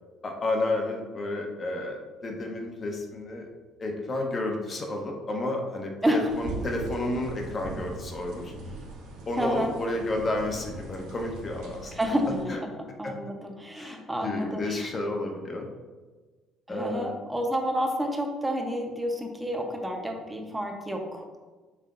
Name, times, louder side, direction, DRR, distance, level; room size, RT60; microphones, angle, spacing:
voice 1, 0.2-3.5 3.8-8.5 9.3-12.1 12.5-12.6 13.0-13.1 13.7-15.7 16.7-17.1, left 2 dB, 40° left, 2 dB, 0.9 m, -31 dB
voice 2, 6.0-6.4 9.4-9.7 11.9-12.7 13.0-14.9 16.7-21.3, equal, 10° right, 2 dB, 0.9 m, -29 dB
sound 1, 6.3-12.4, right 2 dB, 80° right, 0.8 m, -40 dB
5.6 x 3.6 x 2.5 m, 1.3 s
hypercardioid pair, 65°, 0 cm